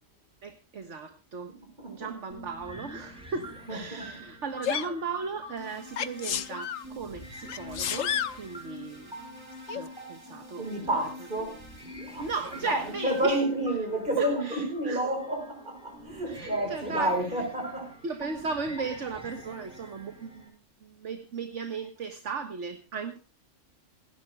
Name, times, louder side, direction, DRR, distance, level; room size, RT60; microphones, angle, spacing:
voice 1, 0.4-1.5 1.9-9.2 9.7-10.7 12.2-13.4 14.2-15.1 16.3-17.4 18.0-23.2, right 5 dB, 65° right, 1.8 m, -36 dB
voice 2, 1.8-2.1 3.7-4.0 10.6-11.6 12.1-12.3 12.6-17.9, right 1 dB, 40° right, 6.3 m, -30 dB
sound 1, 2.3-20.5, equal, 5° right, 5.9 m, -47 dB
Sneeze, 4.6-4.9 6.0-6.8 7.5-8.4 9.7-9.8, left 9 dB, 80° left, 1.2 m, -31 dB
sound 2, 5.6-13.2, left 2 dB, 20° right, 4.6 m, -47 dB
27.5 x 11.5 x 2.3 m
omnidirectional pair, 1.3 m